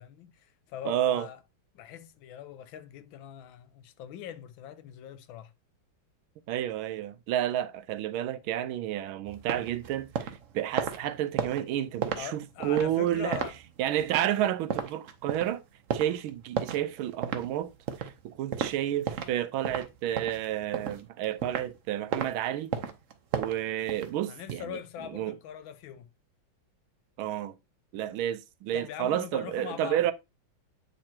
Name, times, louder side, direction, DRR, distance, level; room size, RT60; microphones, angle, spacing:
voice 1, 0.0-1.4 1.7-5.5 12.2-13.6 24.3-26.1 28.7-30.0, left 10 dB, 75° left, 1.4 m, -42 dB
voice 2, 0.8-1.3 6.5-13.4 13.8-15.6 15.9-17.7 18.0-22.7 23.3-24.8 25.1-25.3 27.2-27.6 27.9-30.1, right 12 dB, 85° right, 1.4 m, -30 dB
sound 1, 9.3-19.4 19.6-21.8 22.1-22.3 22.7-24.5, right 7 dB, 65° right, 0.8 m, -34 dB
8.6 x 3.0 x 4.3 m
omnidirectional pair, 2.2 m